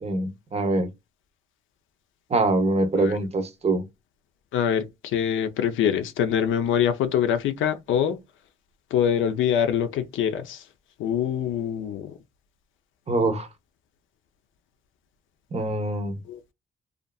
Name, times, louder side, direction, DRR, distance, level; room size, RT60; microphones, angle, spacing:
voice 1, 0.0-0.9 2.3-3.8 13.1-13.5 15.5-16.2, right 2 dB, 30° right, 0.7 m, -24 dB
voice 2, 4.5-8.2 8.9-10.6 11.0-12.1 16.3-16.4, left 9 dB, 80° left, 0.5 m, -24 dB
2.6 x 2.4 x 2.2 m
cardioid pair, 90°, 20 cm